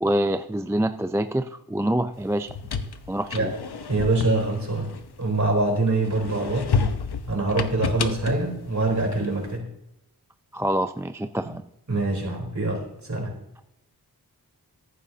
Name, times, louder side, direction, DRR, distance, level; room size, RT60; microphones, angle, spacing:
voice 1, 0.0-2.5 3.1-3.5 10.5-11.6, right 1 dB, 5° right, 9 dB, 0.4 m, -26 dB
sound 1, 2.3-5.6 6.0-9.4, left 5 dB, 70° left, 0.9 m, -30 dB
voice 2, 3.9-4.9 5.2-6.8 7.3-9.7 11.9-13.4, right 2 dB, 45° right, 0 dB, 3.8 m, -24 dB
14.5 x 11.0 x 2.8 m, 0.84 s
wide cardioid pair, 75°, 39 cm